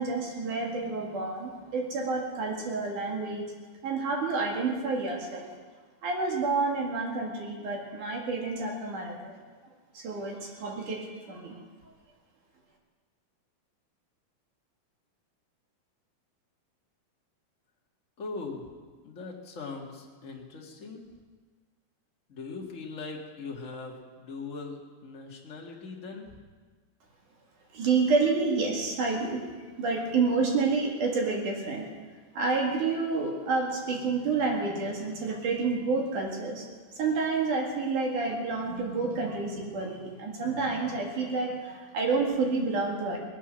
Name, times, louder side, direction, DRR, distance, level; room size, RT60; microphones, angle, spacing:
voice 1, 0.0-3.5 3.8-5.5 6.0-9.4 9.9-11.0 11.3-11.5 27.7-29.4 29.8-31.8 32.3-36.7 36.9-43.2, right 4 dB, 55° right, 0 dB, 3.4 m, -29 dB
voice 2, 18.2-18.7 19.0-21.0 22.3-26.3, left 4 dB, 45° left, -1 dB, 1.0 m, -40 dB
19.0 x 10.5 x 6.3 m, 1.5 s
omnidirectional pair, 4.5 m